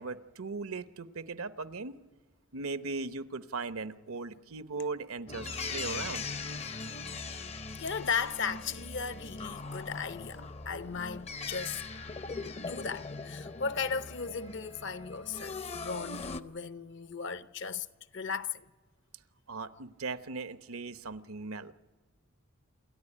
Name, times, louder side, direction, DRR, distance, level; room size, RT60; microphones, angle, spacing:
voice 1, 0.0-1.9 2.5-6.3 19.5-21.7, right 4 dB, 80° right, 0.9 m, -38 dB
sound 1, 5.3-16.4, left 4 dB, 30° left, 0.6 m, -40 dB
voice 2, 7.8-11.8 12.6-17.9 18.1-18.6, left 6 dB, 55° left, 0.8 m, -36 dB
28.5 x 13.5 x 10.0 m
head